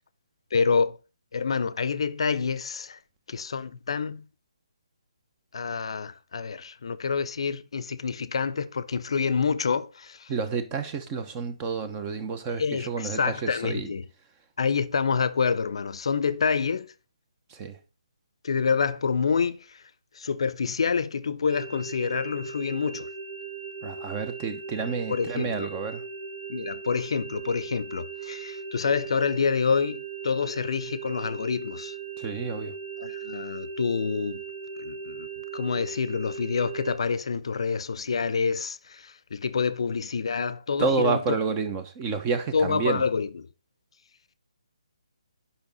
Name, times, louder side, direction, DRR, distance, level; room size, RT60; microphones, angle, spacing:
voice 1, 0.5-1.0 1.3-3.0 3.3-4.2 5.5-10.3 12.6-14.0 14.6-16.9 18.4-19.8 20.1-23.1 25.1-25.7 26.5-32.0 33.0-34.4 34.8-35.3 35.5-41.2 42.5-43.5, left 5 dB, 60° left, 0.6 m, -27 dB
voice 2, 10.3-13.9 17.5-17.8 23.8-26.0 32.2-32.7 40.8-43.0, right 5 dB, 20° right, 0.9 m, -29 dB
sound 1, 21.5-37.0, right 5 dB, 50° right, 1.0 m, -38 dB
8.6 x 5.6 x 4.1 m
figure-of-eight pair, 150°, 3 cm